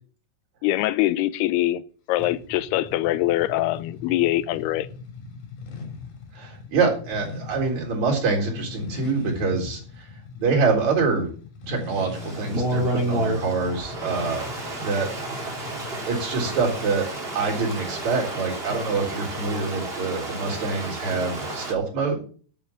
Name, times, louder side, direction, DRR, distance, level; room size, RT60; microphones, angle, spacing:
voice 1, 0.6-1.8 2.1-4.9, left 15 dB, 85° left, 2.7 m, -23 dB
sound 1, 2.2-16.9, left 4 dB, 50° left, 3.9 m, -40 dB
voice 2, 6.3-10.0 10.4-11.3 11.7-14.5 14.8-15.1 16.1-17.1 17.3-22.2, right 4 dB, 45° right, 4.9 m, -25 dB
Stream, 12.1-21.7, right 1 dB, 20° right, 2.3 m, -31 dB
11.5 x 7.4 x 7.1 m
omnidirectional pair, 4.5 m